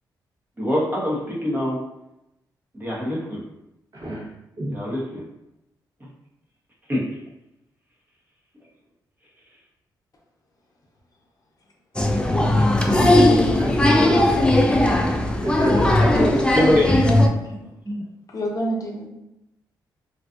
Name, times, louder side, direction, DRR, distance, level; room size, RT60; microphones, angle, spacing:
voice 1, 0.6-1.8 2.7-3.4 4.7-5.2 6.9-7.1 16.5-17.0 17.8-18.0, left 1 dB, 25° right, -4 dB, 0.9 m, -23 dB
voice 2, 3.9-4.3 4.6-4.8 12.8-14.5 15.4-16.6, right 2 dB, 50° right, -6 dB, 1.0 m, -27 dB
Applause, 12.0-17.3, left 1 dB, 10° left, 0.3 m, -18 dB
voice 3, 16.1-17.6 18.3-19.1, right 1 dB, 50° left, -1 dB, 0.6 m, -29 dB
2.5 x 2.3 x 2.4 m, 0.88 s
cardioid pair, 80°, 8 cm